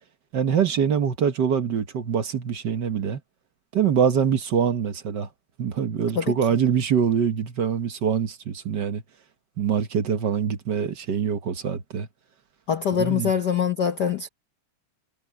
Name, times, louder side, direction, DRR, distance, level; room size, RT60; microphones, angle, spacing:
voice 1, 0.3-3.2 3.7-5.3 5.6-9.0 9.6-12.1 13.0-13.3, right 7 dB, 55° right, 1.3 m, -24 dB
voice 2, 12.7-14.3, left 8 dB, 75° left, 0.9 m, -23 dB
omnidirectional pair, 3.3 m